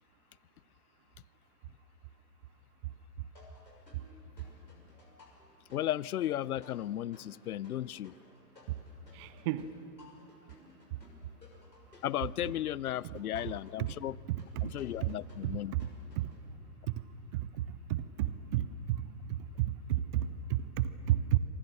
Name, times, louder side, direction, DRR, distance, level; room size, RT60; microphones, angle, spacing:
sound 1, 3.3-16.4, left 1 dB, 85° left, 6.5 m, -59 dB
voice 1, 5.7-8.2 12.0-14.2 14.6-15.7, left 12 dB, 60° left, 23 dB, 0.6 m, -35 dB
voice 2, 9.1-9.7 13.0-13.2 14.6-14.7 15.0-15.1 15.7-15.9 16.2-16.3 17.3-17.4 17.9-18.7 19.6-21.4, right 13 dB, 20° right, 14 dB, 0.5 m, -31 dB
27.5 x 25.0 x 6.7 m, 2.6 s
figure-of-eight pair, 115°, 49 cm